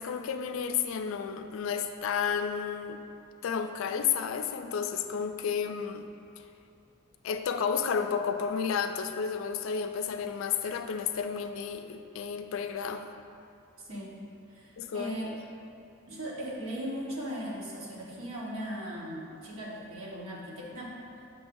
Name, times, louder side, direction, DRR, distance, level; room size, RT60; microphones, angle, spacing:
voice 1, 0.0-3.0 3.4-6.1 7.2-13.0 14.8-15.1, left 7 dB, 70° left, 8 dB, 0.3 m, -31 dB
voice 2, 13.8-14.1 14.5-15.3 16.1-21.0, equal, 85° right, -4 dB, 1.2 m, -38 dB
6.2 x 6.0 x 2.6 m, 2.7 s
head